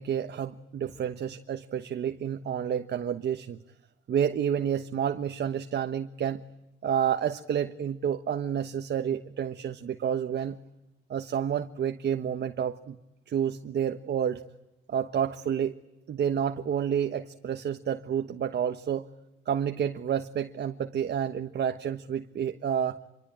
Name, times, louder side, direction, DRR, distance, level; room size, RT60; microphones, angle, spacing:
voice 1, 0.0-3.6 4.1-6.4 6.8-10.6 11.1-12.9 13.3-14.4 14.9-15.7 16.1-19.1 19.5-23.0, right 8 dB, 60° right, 7 dB, 1.3 m, -29 dB
27.0 x 24.0 x 8.8 m, 0.92 s
cardioid pair, 90°, 20 cm